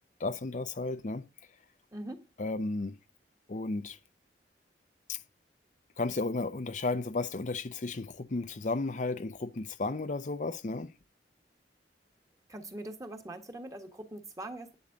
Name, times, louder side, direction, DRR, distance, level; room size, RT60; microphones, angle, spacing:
voice 1, 0.2-1.3 2.4-3.0 3.5-4.0 5.1-5.2 6.0-10.9, left 3 dB, 45° left, 0.6 m, -33 dB
voice 2, 1.9-2.3 12.5-14.7, right 1 dB, 20° right, 1.6 m, -42 dB
11.0 x 10.0 x 3.8 m
head